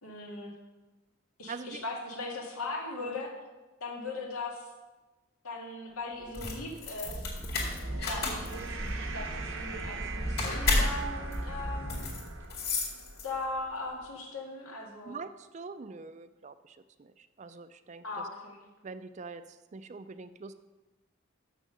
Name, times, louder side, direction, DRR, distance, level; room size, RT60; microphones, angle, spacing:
voice 1, 0.0-0.5 1.4-3.3 3.8-4.7 5.4-7.3 8.1-12.0 13.2-15.2 18.0-18.6, left 2 dB, 90° left, -1 dB, 1.8 m, -39 dB
voice 2, 1.5-1.8 3.0-3.2 15.0-18.3 18.8-20.5, right 4 dB, 30° right, 12 dB, 0.4 m, -44 dB
sound 1, 6.2-13.6, left 3 dB, 45° left, 2.2 m, -33 dB
sound 2, 7.0-12.4, right 1 dB, 10° right, 0.7 m, -38 dB
sound 3, 7.3-13.8, right 5 dB, 65° right, 0.7 m, -44 dB
6.9 x 6.3 x 6.5 m, 1.2 s
head